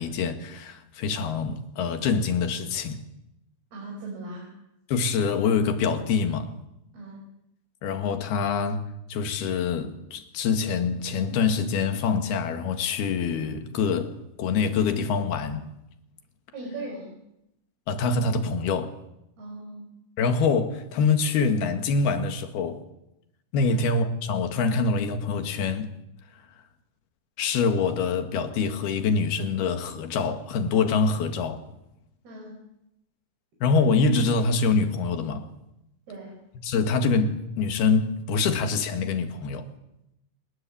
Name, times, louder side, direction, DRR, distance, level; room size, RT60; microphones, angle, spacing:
voice 1, 0.0-3.0 4.9-6.5 7.8-14.1 14.4-15.7 17.9-18.9 20.2-22.8 23.5-25.9 27.4-31.6 33.6-35.5 36.6-39.7, left 4 dB, 70° left, 3.8 m, -25 dB
voice 2, 3.7-4.5 6.9-7.3 16.5-17.2 19.4-19.9 23.7-23.8 32.2-32.6 36.1-36.4, right 2 dB, 65° right, 7.7 m, -39 dB
26.5 x 21.5 x 8.6 m
omnidirectional pair, 4.8 m